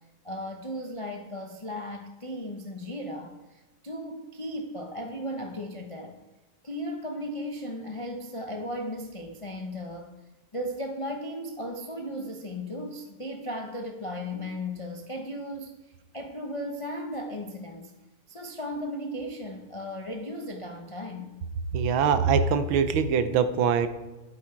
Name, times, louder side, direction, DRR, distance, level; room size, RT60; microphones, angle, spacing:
voice 1, 0.2-6.2 6.6-10.2 10.5-17.9 18.3-21.4, equal, 40° left, 3 dB, 0.4 m, -36 dB
voice 2, 21.7-23.9, right 6 dB, 75° right, 10 dB, 1.6 m, -23 dB
12.5 x 8.6 x 4.5 m, 1.1 s
omnidirectional pair, 2.3 m